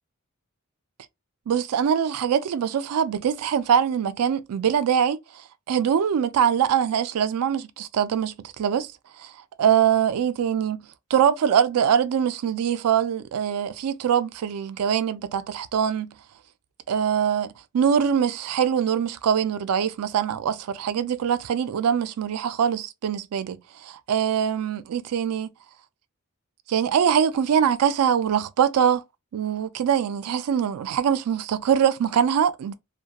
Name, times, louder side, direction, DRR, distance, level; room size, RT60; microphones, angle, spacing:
voice 1, 1.5-5.2 5.7-8.9 9.2-9.3 9.6-10.8 11.1-16.1 16.9-23.6 23.8-25.5 26.7-29.0 29.3-32.7, right 8 dB, 85° right, 0.3 m, -23 dB
2.8 x 2.2 x 2.2 m
head